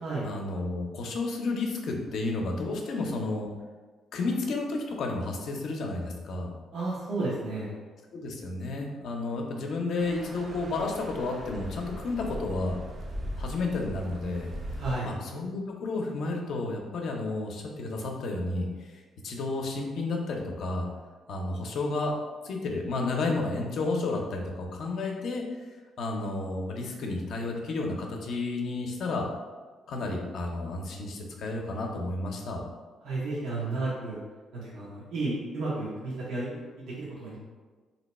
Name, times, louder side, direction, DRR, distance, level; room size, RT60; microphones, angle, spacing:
voice 1, 0.2-3.5 4.1-6.5 8.1-12.8 13.4-14.5 15.0-18.9 19.2-20.9 21.3-22.1 22.4-25.4 26.0-29.3 29.9-32.6, left 3 dB, 70° left, 1 dB, 0.6 m, -31 dB
voice 2, 6.7-7.8 14.8-15.1 33.0-34.2 34.5-37.4, right 2 dB, 80° right, -7 dB, 0.9 m, -32 dB
sound 1, 10.0-15.0, equal, 40° right, 0.5 m, -39 dB
2.7 x 2.2 x 4.1 m, 1.4 s
cardioid pair, 90°, 0 cm